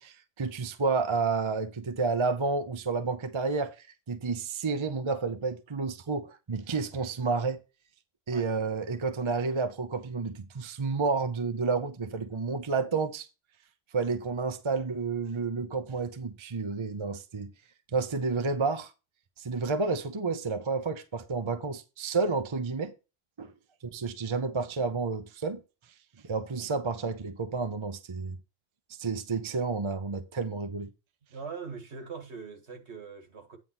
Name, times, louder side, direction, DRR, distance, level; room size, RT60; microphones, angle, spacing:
voice 1, 0.0-7.6 8.3-13.3 13.9-17.5 17.9-18.9 19.4-22.9 23.4-23.5 23.8-25.6 26.2-28.4 29.0-30.9, right 4 dB, 30° right, 0.7 m, -30 dB
voice 2, 31.3-33.6, right 5 dB, 65° right, 2.0 m, -42 dB
9.3 x 3.6 x 5.8 m
omnidirectional pair, 1.2 m